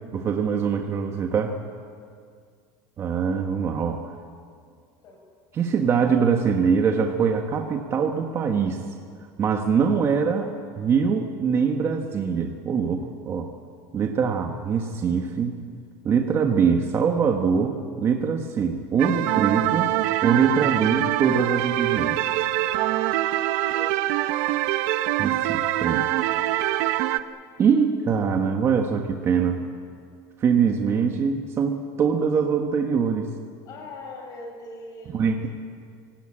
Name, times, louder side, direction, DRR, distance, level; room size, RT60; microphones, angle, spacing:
voice 1, 0.1-1.6 3.0-4.0 5.5-8.8 9.4-13.5 13.9-15.6 16.0-22.2 25.2-26.1 27.6-29.6 30.4-33.3 35.1-35.5, right 6 dB, 30° right, 4 dB, 1.4 m, -23 dB
sound 1, 19.0-27.2, right 15 dB, 65° right, 1.0 m, -24 dB
voice 2, 23.7-24.3 33.7-35.4, left 2 dB, 40° left, 0 dB, 7.5 m, -41 dB
25.5 x 18.0 x 8.8 m, 2.1 s
cardioid pair, 160°, 9 cm